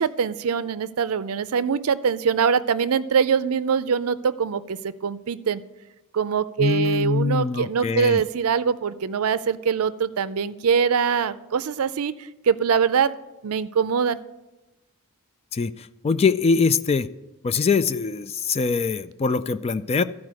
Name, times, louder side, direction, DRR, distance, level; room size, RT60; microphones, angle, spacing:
voice 1, 0.0-5.6 6.1-12.1 12.4-13.1 13.4-14.2, right 6 dB, 70° right, 14 dB, 0.5 m, -23 dB
voice 2, 6.6-8.2 15.5-17.1 17.4-20.0, left 4 dB, 30° left, 13 dB, 0.3 m, -23 dB
14.0 x 4.8 x 6.2 m, 1.0 s
head